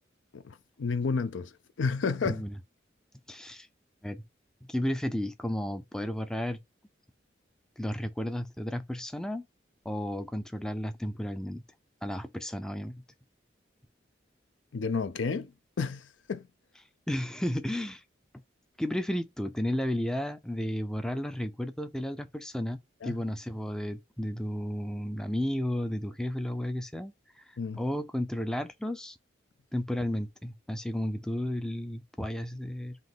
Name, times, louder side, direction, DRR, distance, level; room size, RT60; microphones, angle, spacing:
voice 1, 0.3-1.5 1.8-2.4 14.7-15.5 15.8-16.5 23.0-23.2 27.6-27.8, left 4 dB, 80° left, 0.5 m, -31 dB
voice 2, 3.3-3.7 4.0-4.2 4.7-6.6 7.8-9.5 9.9-11.6 12.0-13.0 17.1-18.0 18.8-27.1 27.4-29.2 29.7-33.0, equal, 5° left, 0.3 m, -33 dB
3.8 x 2.8 x 3.6 m
head